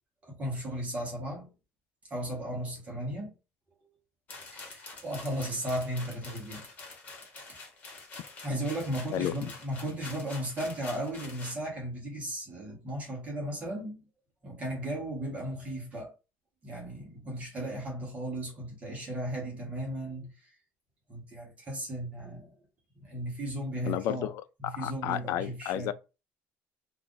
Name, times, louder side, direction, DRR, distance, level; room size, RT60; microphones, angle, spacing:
voice 1, 0.2-1.5 2.1-3.3 4.5-6.6 7.5-7.6 8.4-14.0 14.4-16.1 16.6-20.5 21.1-22.5 23.0-24.3 24.6-25.9, right 1 dB, 30° right, 1.1 m, -35 dB
sound 1, 4.3-11.6, left 3 dB, 30° left, 1.2 m, -46 dB
voice 2, 9.1-9.5 23.8-24.3 24.6-25.9, left 12 dB, 70° left, 0.3 m, -32 dB
2.5 x 2.4 x 3.8 m
cardioid pair, 150°, 5 cm